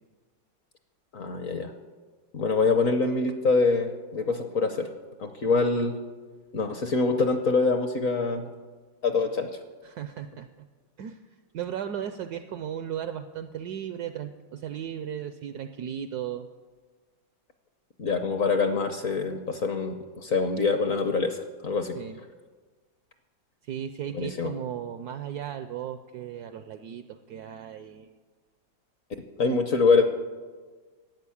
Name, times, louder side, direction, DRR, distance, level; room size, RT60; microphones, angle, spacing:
voice 1, 1.1-1.7 2.3-4.9 5.2-6.0 6.5-8.4 9.0-9.5 18.0-22.0 24.1-24.5 29.4-30.0, left 4 dB, 55° left, 7 dB, 1.0 m, -25 dB
voice 2, 9.8-10.5 11.0-11.2 11.5-16.5 22.0-22.2 23.6-28.1, right 9 dB, 75° right, 10 dB, 0.9 m, -36 dB
12.0 x 8.7 x 8.5 m, 1.4 s
omnidirectional pair, 2.2 m